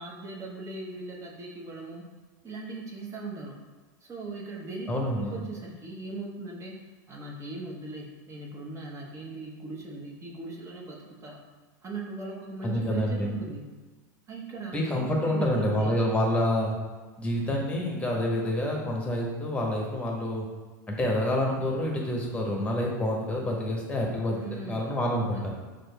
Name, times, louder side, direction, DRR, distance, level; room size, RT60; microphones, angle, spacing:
voice 1, 0.0-2.1 2.4-3.6 4.0-6.8 7.1-11.4 11.8-13.6 14.3-16.0 24.3-24.9 25.3-25.5, right 3 dB, 30° right, -1 dB, 0.9 m, -39 dB
voice 2, 4.9-5.4 12.6-13.4 14.7-16.8 17.2-20.5 20.9-24.4 24.7-25.5, left 1 dB, 10° left, -1 dB, 1.0 m, -27 dB
6.1 x 2.5 x 2.3 m, 1.3 s
hypercardioid pair, 100°, 10 cm